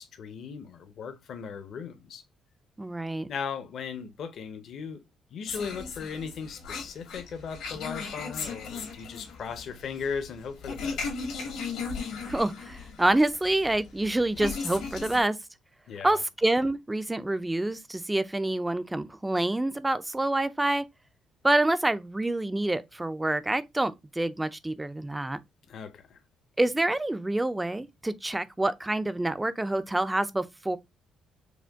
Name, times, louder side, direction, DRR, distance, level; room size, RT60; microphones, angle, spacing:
voice 1, 0.0-2.2 3.3-5.0 5.3-11.1 15.9-16.2 25.7-26.2, left 6 dB, 55° left, 0.6 m, -37 dB
voice 2, 2.8-3.3 12.3-15.4 16.0-20.9 21.4-25.4 26.6-30.8, right 2 dB, 10° right, 0.3 m, -27 dB
sound 1, 5.5-15.2, left 5 dB, 90° left, 2.0 m, -37 dB
5.0 x 2.2 x 3.4 m
cardioid pair, 140°, 0 cm